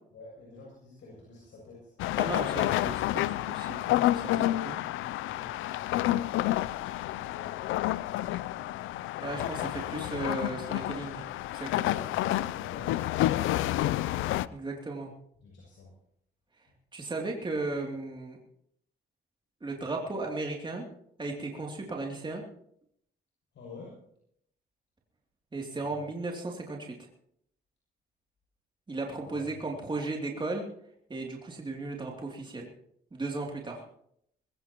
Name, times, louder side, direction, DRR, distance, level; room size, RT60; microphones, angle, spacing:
voice 1, 0.1-1.9 5.3-8.9 11.8-13.9 15.4-15.9 23.5-24.0 25.8-26.1 29.3-29.8, left 3 dB, 70° left, -4 dB, 7.7 m, -49 dB
sound 1, 2.0-14.5, left 15 dB, 90° left, 0.5 m, -29 dB
voice 2, 2.2-4.8 9.2-11.9 14.5-15.1 16.9-18.4 19.6-20.8 21.2-22.4 25.5-26.9 28.9-30.6 31.1-32.7 33.1-33.8, right 2 dB, 25° right, -1 dB, 2.9 m, -36 dB
21.0 x 17.5 x 3.0 m, 0.70 s
cardioid pair, 90°, 20 cm